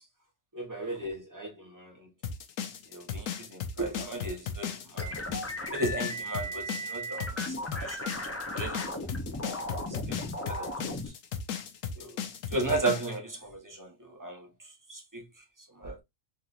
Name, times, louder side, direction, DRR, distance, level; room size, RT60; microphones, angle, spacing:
voice 1, 0.5-2.1 2.9-5.2 5.7-8.1 8.5-9.0 9.7-10.2 10.5-10.7 11.9-12.2 12.5-14.5 14.9-15.2 15.7-16.0, right 2 dB, 20° right, 0.8 m, -35 dB
sound 1, 2.2-13.1, left 7 dB, 90° left, 1.0 m, -36 dB
sound 2, 5.0-11.1, left 1 dB, 20° left, 0.4 m, -36 dB
3.7 x 2.9 x 2.5 m
omnidirectional pair, 1.3 m